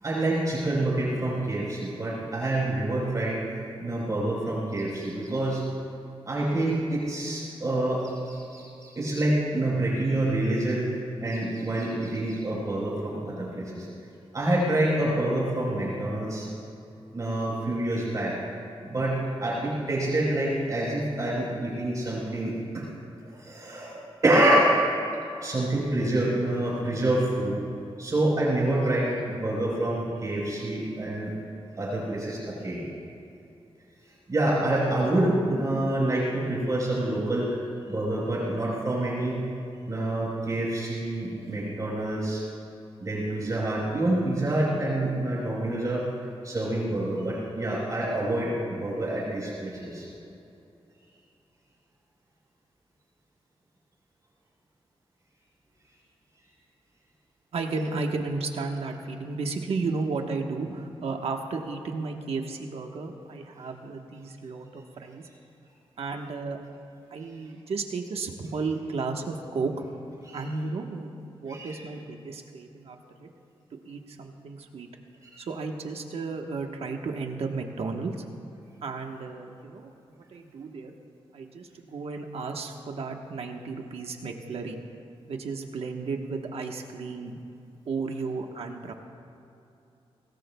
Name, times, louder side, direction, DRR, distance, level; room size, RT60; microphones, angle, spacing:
voice 1, 0.0-3.4 3.8-5.7 6.3-10.9 11.2-13.9 14.3-16.5 17.1-18.4 18.8-22.9 23.2-23.9 24.2-24.8 25.4-27.6 28.0-31.3 31.8-32.9 34.3-37.6 37.9-39.4 39.9-42.4 43.0-46.1 46.4-50.1 66.1-66.2 70.2-70.5 71.5-71.8 75.3-75.4, right 1 dB, 35° right, -6 dB, 4.2 m, -27 dB
voice 2, 57.5-65.2 66.0-66.6 67.1-69.9 70.3-73.3 73.8-74.9 75.4-78.2 78.8-80.9 81.3-84.8 85.3-87.4 87.9-88.9, right 4 dB, 75° right, 3 dB, 1.2 m, -33 dB
24.0 x 18.5 x 2.3 m, 2.8 s
wide cardioid pair, 155°, 10 cm